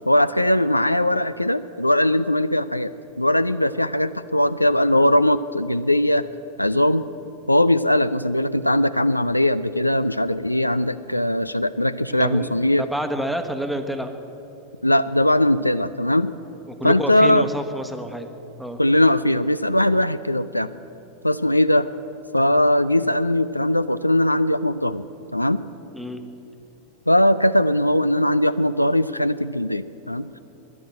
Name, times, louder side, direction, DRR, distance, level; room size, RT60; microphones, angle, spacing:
voice 1, 0.0-6.3 6.6-7.1 7.5-12.8 14.8-16.3 16.8-17.5 18.8-20.7 21.2-21.9 22.3-25.0 25.3-25.6 27.1-30.3, left 1 dB, 85° left, 14 dB, 0.3 m, -20 dB
voice 2, 12.1-14.1 16.7-18.3 18.6-18.8 25.9-26.2, equal, ahead, 7 dB, 1.1 m, -29 dB
12.0 x 10.5 x 8.5 m, 3.0 s
figure-of-eight pair, 90°, 0 cm